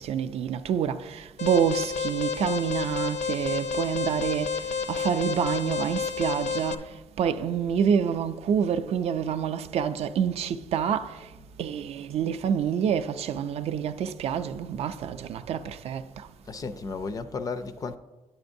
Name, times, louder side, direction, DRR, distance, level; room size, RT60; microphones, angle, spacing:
voice 1, 0.0-11.3 11.6-16.3, right 8 dB, 60° right, 0.4 m, -27 dB
Alarm, 1.4-6.7, left 6 dB, 80° left, 0.6 m, -30 dB
voice 2, 11.3-11.6 16.5-18.0, left 4 dB, 30° left, 0.4 m, -34 dB
10.5 x 8.5 x 2.6 m
cardioid pair, 180°, 12 cm